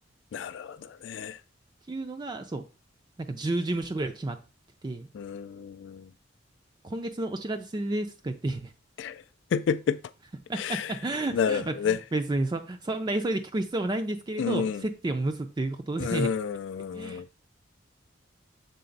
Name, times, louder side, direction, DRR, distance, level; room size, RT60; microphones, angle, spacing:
voice 1, 0.3-1.4 5.1-6.1 9.0-9.2 9.5-10.0 10.6-10.9 11.3-12.0 14.4-14.8 16.0-17.2, left 6 dB, 65° left, 0.3 m, -30 dB
voice 2, 1.9-2.6 3.2-4.4 4.8-5.1 6.8-8.7 10.5-16.3 16.9-17.2, right 2 dB, 20° right, 0.4 m, -31 dB
6.8 x 4.0 x 3.9 m
head